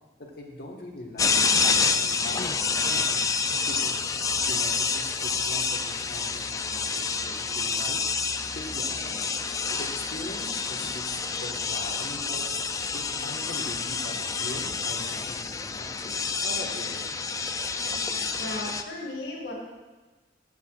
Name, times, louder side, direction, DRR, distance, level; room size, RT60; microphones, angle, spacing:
voice 1, 0.2-3.2 3.7-4.1 4.5-8.0 8.5-9.0 9.7-12.4 12.9-17.0, left 1 dB, 55° left, 0 dB, 1.4 m, -41 dB
sound 1, 1.2-18.8, left 5 dB, 20° left, 0.3 m, -28 dB
voice 2, 9.0-9.3 18.3-19.5, left 2 dB, 75° left, -2 dB, 2.0 m, -36 dB
15.0 x 8.1 x 2.4 m, 1.2 s
head